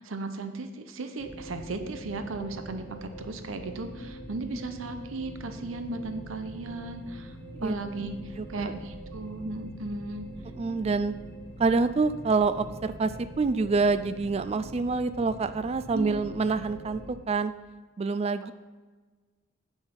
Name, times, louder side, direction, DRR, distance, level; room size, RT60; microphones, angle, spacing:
voice 1, 0.0-10.3 15.9-16.2, right 2 dB, 85° right, 8 dB, 0.8 m, -36 dB
sound 1, 1.2-17.1, right 1 dB, 10° left, 1.6 m, -43 dB
voice 2, 10.6-11.1 11.6-13.1 13.4-17.5 18.0-18.5, right 4 dB, 30° right, 13 dB, 0.3 m, -26 dB
9.0 x 6.1 x 5.3 m, 1.4 s
head